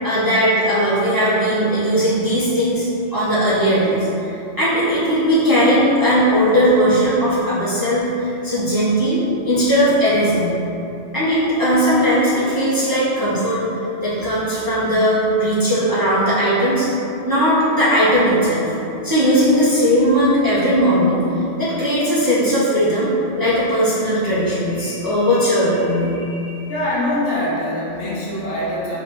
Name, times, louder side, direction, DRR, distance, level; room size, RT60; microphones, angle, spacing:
voice 1, 0.0-10.6 11.1-13.6 14.0-16.9 17.2-18.7 19.0-21.2 21.6-26.7, equal, 20° right, -11 dB, 0.7 m, -18 dB
voice 2, 26.7-29.0, left 1 dB, 60° left, -7 dB, 1.0 m, -23 dB
3.8 x 2.5 x 4.2 m, 2.8 s
omnidirectional pair, 1.2 m